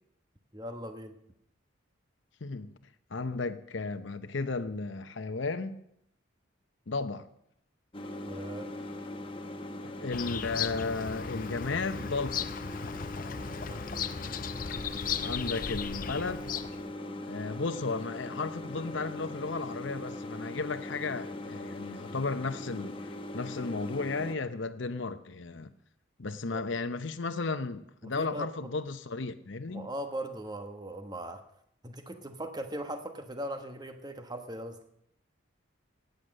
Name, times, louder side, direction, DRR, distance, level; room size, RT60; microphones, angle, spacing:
voice 1, 0.5-1.2 8.2-8.7 13.5-14.3 26.5-26.6 28.0-28.5 29.7-31.4 31.8-34.8, right 1 dB, 20° right, 1.2 m, -39 dB
voice 2, 2.4-2.7 3.1-5.8 6.9-7.3 9.8-12.5 15.2-16.5 17.3-23.0 23.3-25.7 26.2-29.9, left 3 dB, 70° left, 0.8 m, -34 dB
sound 1, 7.9-24.4, left 1 dB, 25° left, 1.1 m, -41 dB
Bird vocalization bird call bird song, 10.1-16.9, left 7 dB, 45° left, 0.6 m, -36 dB
16.5 x 9.4 x 6.5 m
head